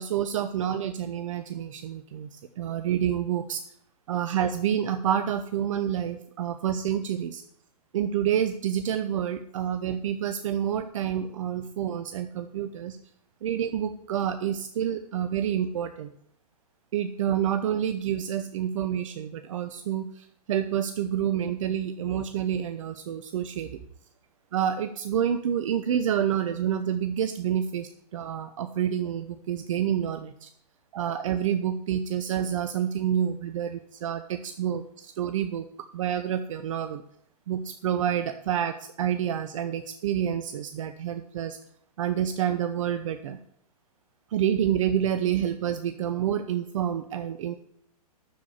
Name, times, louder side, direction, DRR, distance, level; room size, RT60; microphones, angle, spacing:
voice 1, 0.0-3.6 4.1-7.4 7.9-13.0 13.4-16.1 16.9-23.7 24.5-30.5 30.9-33.7 34.0-35.7 35.9-37.0 37.5-41.6 42.0-43.4 44.3-47.6, right 9 dB, 50° right, 9 dB, 0.9 m, -28 dB
12.5 x 4.9 x 8.6 m, 0.68 s
figure-of-eight pair, 120°, 20 cm